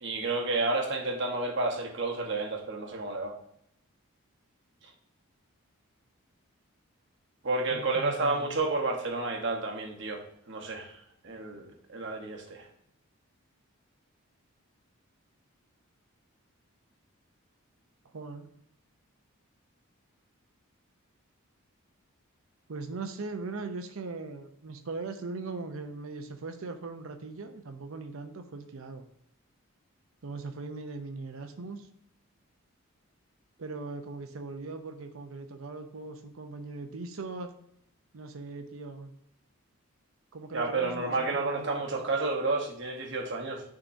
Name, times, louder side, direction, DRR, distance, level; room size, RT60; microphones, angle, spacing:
voice 1, 0.0-3.3 7.4-10.9 11.2-12.6 40.5-43.6, right 3 dB, 55° right, 1 dB, 1.0 m, -31 dB
voice 2, 7.7-8.6 18.1-18.5 22.7-29.0 30.2-31.9 33.6-37.5 38.1-39.1 40.3-42.1, right 3 dB, 70° right, 6 dB, 0.6 m, -40 dB
9.8 x 3.7 x 2.6 m, 0.72 s
head